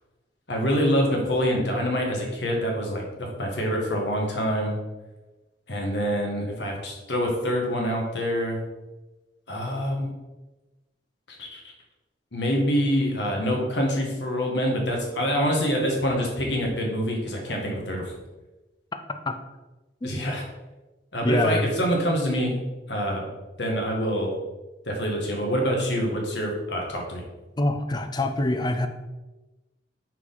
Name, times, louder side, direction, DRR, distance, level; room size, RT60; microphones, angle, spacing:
voice 1, 0.5-4.7 5.7-8.6 9.5-10.1 11.3-11.6 12.3-18.1 20.0-20.4 21.1-22.6 22.9-23.3 23.6-24.3 24.9-27.2, equal, 75° left, 0 dB, 1.5 m, -26 dB
voice 2, 21.2-21.8 27.6-28.9, left 1 dB, 25° left, 7 dB, 0.5 m, -24 dB
5.9 x 4.6 x 3.8 m, 1.1 s
head